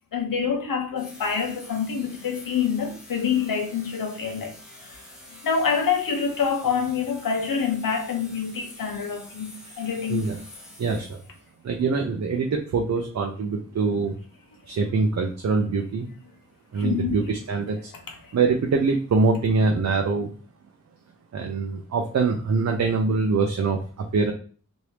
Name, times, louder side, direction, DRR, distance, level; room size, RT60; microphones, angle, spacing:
voice 1, 0.1-5.0 5.4-10.3 16.8-17.2 18.1-18.3, left 6 dB, 80° left, 0.8 m, -26 dB
sound 1, 0.9-11.5, left 1 dB, ahead, 1.1 m, -47 dB
voice 2, 10.8-11.2 11.6-14.2 14.7-16.1 16.7-17.9 18.3-20.3 21.3-24.3, right 4 dB, 55° right, 0.5 m, -24 dB
3.0 x 2.6 x 3.2 m
wide cardioid pair, 75°, 33 cm